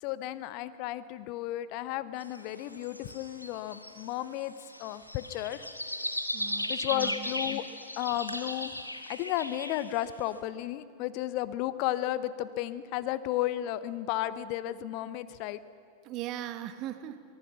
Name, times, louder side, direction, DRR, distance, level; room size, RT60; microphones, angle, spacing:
voice 1, 0.0-4.5 4.8-5.7 6.7-7.6 8.0-8.8 9.1-15.6, left 14 dB, 45° left, 15 dB, 0.7 m, -33 dB
sound 1, 2.2-10.2, left 1 dB, 85° left, 1.3 m, -37 dB
voice 2, 6.3-7.3 16.0-17.2, right 12 dB, 40° right, 11 dB, 1.1 m, -39 dB
24.0 x 18.5 x 6.0 m, 2.2 s
figure-of-eight pair, 90°, 0 cm